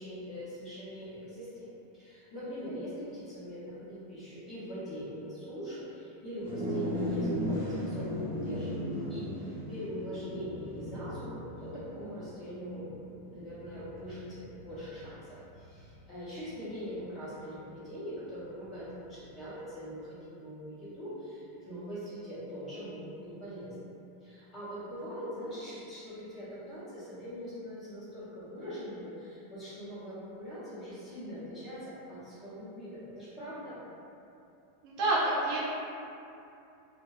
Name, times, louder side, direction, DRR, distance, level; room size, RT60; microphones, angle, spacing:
voice 1, 0.0-1.7 1.9-12.9 13.3-23.7 24.2-33.8, equal, 20° left, -10 dB, 0.6 m, -42 dB
sound 1, 6.4-16.0, equal, 85° right, 0.7 m, -37 dB
voice 2, 34.8-35.6, right 2 dB, 35° right, -7 dB, 0.4 m, -28 dB
2.6 x 2.1 x 2.2 m, 2.7 s
supercardioid pair, 180°, 0 cm